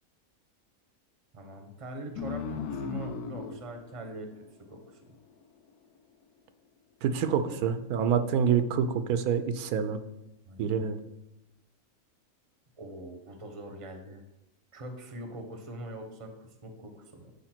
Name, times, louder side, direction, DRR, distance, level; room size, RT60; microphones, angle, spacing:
voice 1, 1.3-5.2 10.4-11.0 12.8-14.2 14.7-17.3, right 1 dB, 25° right, 5 dB, 0.8 m, -43 dB
sound 1, 2.2-5.3, left 6 dB, 90° left, 1.2 m, -38 dB
voice 2, 7.0-10.0 10.6-11.0, right 7 dB, 80° right, 10 dB, 1.1 m, -27 dB
8.4 x 4.9 x 4.4 m, 0.88 s
omnidirectional pair, 1.6 m